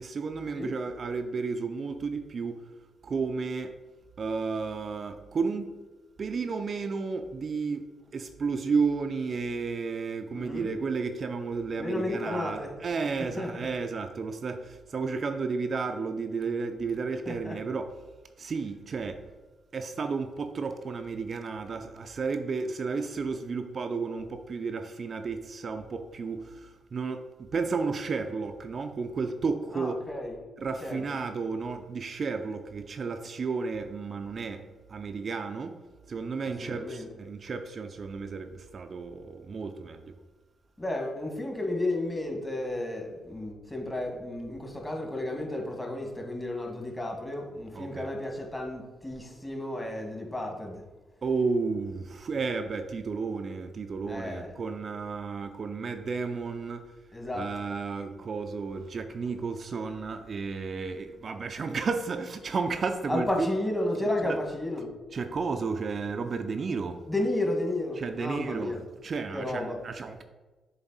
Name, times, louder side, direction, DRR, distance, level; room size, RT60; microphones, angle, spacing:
voice 1, 0.0-2.7 3.0-3.7 4.2-5.7 6.2-7.8 8.1-17.9 18.4-19.2 19.7-30.0 30.6-34.6 34.9-40.2 47.7-48.1 51.2-57.0 57.3-63.5 64.2-64.4 65.1-67.0 68.0-70.2, right 4 dB, 50° right, 7 dB, 0.5 m, -32 dB
voice 2, 10.3-10.7 11.8-12.7 13.4-13.7 17.3-17.6 29.7-30.4 30.8-31.0 36.6-37.1 40.8-50.8 54.1-54.5 57.1-57.5 63.1-64.9 67.1-68.8 69.3-69.8, left 1 dB, 20° left, 1 dB, 1.9 m, -32 dB
7.1 x 3.9 x 4.0 m, 1.2 s
hypercardioid pair, 45°, 0 cm